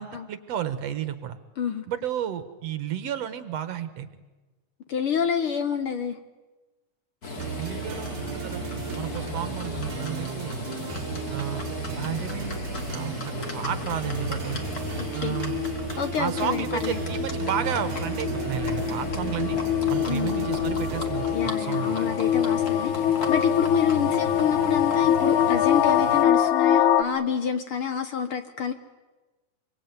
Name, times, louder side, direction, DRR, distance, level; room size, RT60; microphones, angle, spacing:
voice 1, 0.0-1.4 1.9-4.1 7.6-8.6 9.0-10.7 11.3-11.6 12.0-12.6 12.9-14.6 15.1-15.6 16.2-19.6 19.9-22.1, right 10 dB, 65° right, 12 dB, 2.3 m, -32 dB
voice 2, 4.9-6.2 15.0-15.4 16.0-17.0 20.1-20.5 21.3-22.9 23.3-28.7, left 7 dB, 60° left, 9 dB, 1.6 m, -28 dB
Livestock farm animals working animals, 7.2-26.2, left 3 dB, 30° left, 2.6 m, -35 dB
sound 1, 7.4-21.5, right 10 dB, 80° right, 2.5 m, -36 dB
sound 2, 15.0-27.0, left 10 dB, 85° left, 2.7 m, -24 dB
25.5 x 23.5 x 9.5 m, 1.2 s
omnidirectional pair, 3.4 m